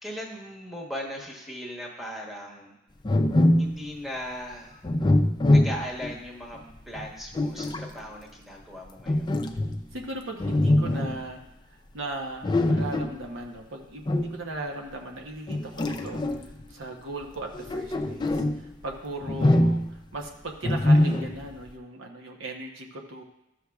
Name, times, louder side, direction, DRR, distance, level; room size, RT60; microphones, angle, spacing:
voice 1, 0.0-2.7 3.6-4.8 5.5-6.6 6.8-9.3, equal, ahead, -2 dB, 1.1 m, -38 dB
sound 1, 3.0-3.8 4.8-6.2 6.9-7.9 9.1-10.0 10.4-11.2 12.4-13.2 14.1-14.4 15.5-16.6 17.4-18.6 19.2-20.0 20.6-21.5, left 1 dB, 20° left, 0.4 m, -23 dB
voice 2, 9.9-11.4 11.9-16.2 16.7-18.4 18.8-23.2, right 2 dB, 70° right, 2 dB, 0.9 m, -37 dB
12.5 x 6.3 x 2.4 m, 0.91 s
head